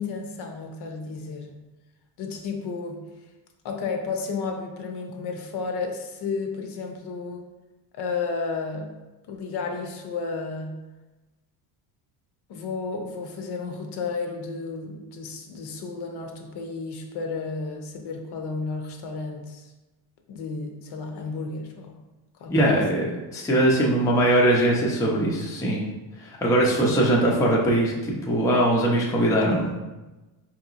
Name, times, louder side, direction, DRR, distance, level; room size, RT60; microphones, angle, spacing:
voice 1, 0.0-1.6 2.2-3.0 3.6-7.4 7.9-8.9 9.3-10.8 12.5-19.7 20.3-22.0 22.3-22.8 26.8-27.0, left 4 dB, 55° left, 4 dB, 0.7 m, -32 dB
voice 2, 22.5-25.8 26.2-29.7, right 1 dB, 5° left, -3 dB, 0.4 m, -21 dB
4.6 x 2.9 x 2.4 m, 1.1 s
cardioid pair, 135°, 47 cm